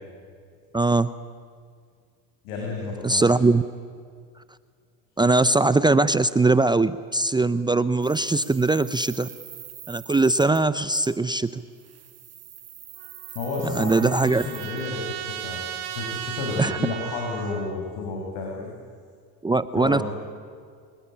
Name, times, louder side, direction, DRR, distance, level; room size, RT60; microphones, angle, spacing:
voice 1, 0.7-1.1 3.0-3.6 5.2-9.3 9.9-11.6 13.6-14.4 16.6-16.8 19.4-20.0, right 3 dB, 10° right, 14 dB, 0.6 m, -21 dB
voice 2, 2.4-3.4 13.4-15.6 16.0-18.7 19.7-20.0, left 3 dB, 75° left, -1 dB, 7.0 m, -31 dB
sound 1, 8.0-10.7 10.9-11.2 11.7-14.9, right 10 dB, 35° right, 1.6 m, -44 dB
Trumpet, 13.0-17.7, right 11 dB, 80° right, 2.8 m, -36 dB
28.5 x 20.5 x 10.0 m, 2.1 s
supercardioid pair, 105°, 44 cm